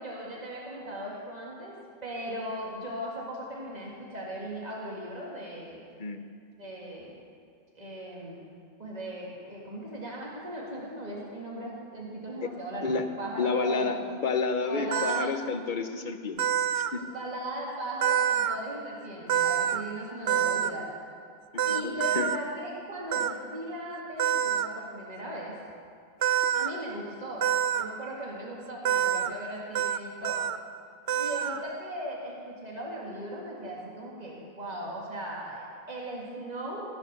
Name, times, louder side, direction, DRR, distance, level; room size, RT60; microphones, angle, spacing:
voice 1, 0.0-1.7 2.0-5.8 6.6-7.2 7.7-8.4 8.8-14.0 14.6-15.3 17.0-20.9 21.7-25.6 26.5-27.5 27.7-30.5 31.2-36.8, right 1 dB, 40° right, -4 dB, 2.3 m, -38 dB
voice 2, 13.4-16.5 16.7-17.1 21.5-22.3, left 4 dB, 50° left, 7 dB, 1.1 m, -30 dB
sound 1, 14.9-15.3 16.4-16.9 18.0-18.6 19.3-19.8 20.3-20.7 21.6-22.4 23.1-23.3 24.2-24.7 26.2-26.7 27.4-27.8 28.8-29.3 29.7-30.0 30.2-30.6 31.1-31.6, right 9 dB, 85° right, 0.9 m, -26 dB
16.0 x 10.5 x 6.8 m, 2.2 s
omnidirectional pair, 1.0 m